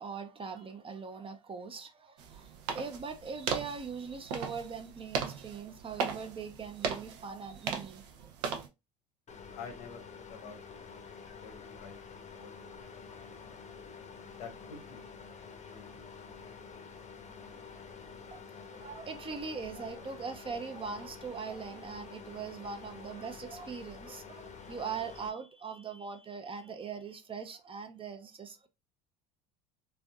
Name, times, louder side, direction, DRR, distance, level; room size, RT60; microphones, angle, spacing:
voice 1, 0.0-8.3 18.3-28.7, right 5 dB, 25° right, 0.6 m, -41 dB
sound 1, 2.2-8.7, right 6 dB, 85° right, 0.7 m, -38 dB
sound 2, 9.3-25.3, left 5 dB, 35° left, 0.7 m, -49 dB
voice 2, 9.5-10.6 11.4-12.0 12.4-13.0 14.3-15.0 15.7-15.9, left 5 dB, 80° left, 1.0 m, -48 dB
3.3 x 2.5 x 2.2 m
supercardioid pair, 85°, 20 cm